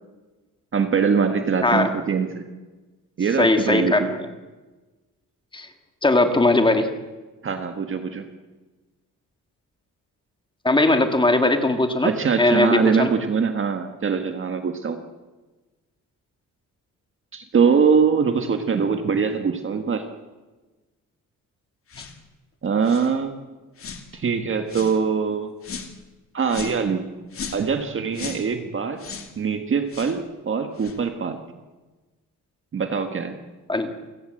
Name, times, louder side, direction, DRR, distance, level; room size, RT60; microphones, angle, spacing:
voice 1, 0.7-2.4 3.2-4.1 7.4-8.2 12.0-15.0 17.3-20.0 22.6-23.4 24.1-25.5 26.3-27.1 27.5-29.0 29.4-31.4 32.7-33.4, right 6 dB, 40° right, 6 dB, 1.6 m, -23 dB
voice 2, 3.4-4.3 5.5-5.7 6.0-6.9 10.6-12.1 12.4-13.1 33.7-33.9, left 2 dB, 15° left, 6 dB, 1.9 m, -19 dB
sound 1, 21.9-22.2 22.8-23.1 23.8-24.1 24.7-25.0 25.6-25.9 26.5-26.8 27.3-27.7 28.1-28.5 29.0-29.3 29.9-30.2 30.8-31.0, left 6 dB, 40° left, 2.4 m, -36 dB
29.0 x 16.5 x 7.7 m, 1.2 s
cardioid pair, 160°, 33 cm